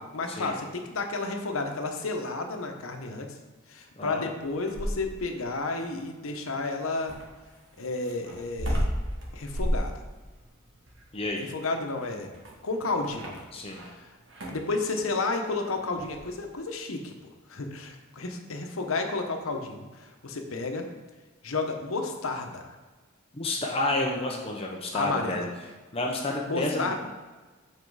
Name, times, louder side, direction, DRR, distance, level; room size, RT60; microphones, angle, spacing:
voice 1, 0.0-3.3 3.7-7.1 7.8-8.9 9.3-9.9 11.4-12.3 12.6-13.4 13.9-14.1 14.5-17.1 17.5-20.9 21.4-22.7 24.9-25.5 26.5-26.9, left 3 dB, 80° left, 4 dB, 0.9 m, -31 dB
sound 1, 4.4-5.3 7.1-13.9 14.3-14.7 16.0-16.3, equal, 60° right, 1.5 m, -32 dB
voice 2, 11.1-11.5 13.5-13.9 23.3-25.5 25.9-26.9, left 2 dB, 30° left, 0 dB, 0.7 m, -30 dB
7.6 x 4.4 x 4.8 m, 1.3 s
head